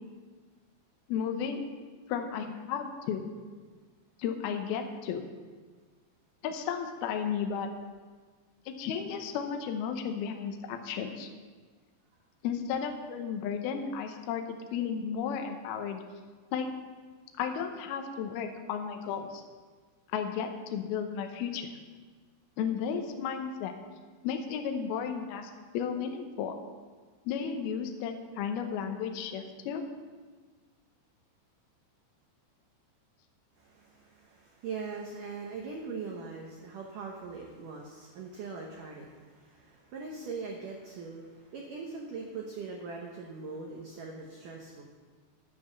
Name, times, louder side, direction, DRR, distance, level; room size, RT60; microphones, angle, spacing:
voice 1, 1.1-1.6 2.1-3.3 4.2-5.2 6.4-7.7 8.7-11.3 12.4-16.0 16.5-16.7 17.4-19.4 20.1-21.7 22.6-23.7 24.2-26.5 27.3-29.8, left 7 dB, 80° left, 5 dB, 2.3 m, -33 dB
voice 2, 33.6-44.8, right 4 dB, 80° right, 0 dB, 1.9 m, -41 dB
11.0 x 9.5 x 6.7 m, 1.5 s
omnidirectional pair, 5.4 m